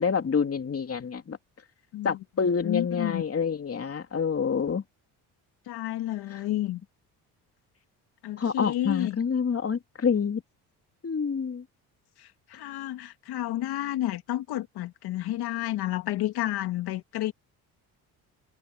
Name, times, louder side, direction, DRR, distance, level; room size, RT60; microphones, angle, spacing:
voice 1, 0.0-1.4 2.0-4.8 6.3-6.4 8.4-10.4 11.0-11.6, left 6 dB, 35° left, 2.8 m, -27 dB
voice 2, 1.9-3.2 5.7-6.8 8.2-9.2 12.2-17.3, left 14 dB, 75° left, 2.1 m, -31 dB
supercardioid pair, 75°, 39 cm